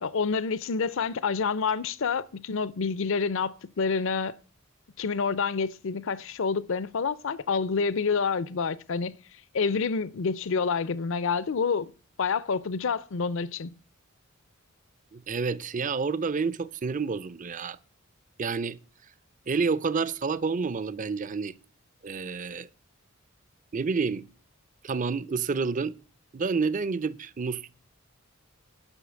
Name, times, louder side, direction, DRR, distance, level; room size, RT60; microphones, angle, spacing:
voice 1, 0.0-4.4 5.0-9.2 9.5-11.9 12.2-13.7, left 5 dB, 65° left, 0.5 m, -28 dB
voice 2, 15.1-17.8 18.4-18.8 19.5-21.5 22.0-22.7 23.7-24.3 24.8-26.0 26.3-27.8, right 4 dB, 40° right, 0.5 m, -29 dB
9.9 x 6.4 x 6.3 m
head